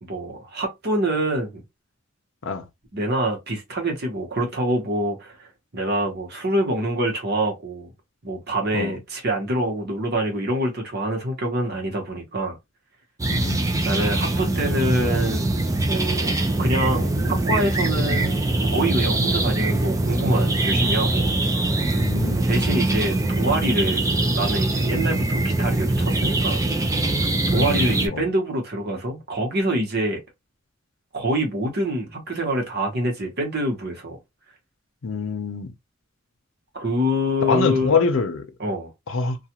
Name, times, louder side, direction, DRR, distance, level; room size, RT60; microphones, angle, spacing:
voice 1, 0.0-1.6 2.9-5.4 5.7-7.9 8.2-12.6 13.8-15.6 15.9-18.3 18.6-21.3 22.5-24.1 24.3-26.6 27.5-30.2 31.1-34.2 36.7-38.0 38.6-38.9, right 1 dB, 50° right, 1.1 m, -25 dB
sound 1, 13.2-28.1, right 2 dB, 15° right, 0.4 m, -22 dB
voice 2, 13.3-13.6 22.0-22.5 27.5-28.2 35.0-35.7 37.5-38.4 39.1-39.4, left 4 dB, 70° left, 0.6 m, -25 dB
2.4 x 2.3 x 2.9 m
head